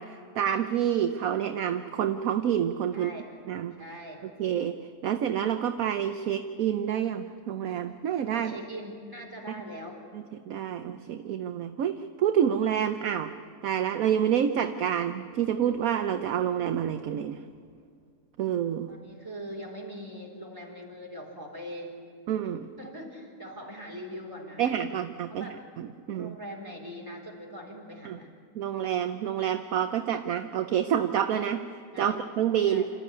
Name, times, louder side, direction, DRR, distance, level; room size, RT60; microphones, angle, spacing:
voice 1, 0.0-3.1 3.5-3.8 4.4-8.5 10.1-13.3 13.6-17.4 18.4-18.9 22.3-22.7 24.6-25.5 25.8-26.4 28.0-28.2 28.5-31.7 32.0-32.8, right 9 dB, 65° right, 8 dB, 1.1 m, -28 dB
voice 2, 2.9-3.3 3.8-4.2 8.3-10.0 18.9-21.9 22.8-24.7 25.3-25.6 26.1-28.3 31.9-32.2 32.6-32.8, equal, 10° right, -1 dB, 4.2 m, -41 dB
27.0 x 14.0 x 9.6 m, 2.2 s
omnidirectional pair, 1.8 m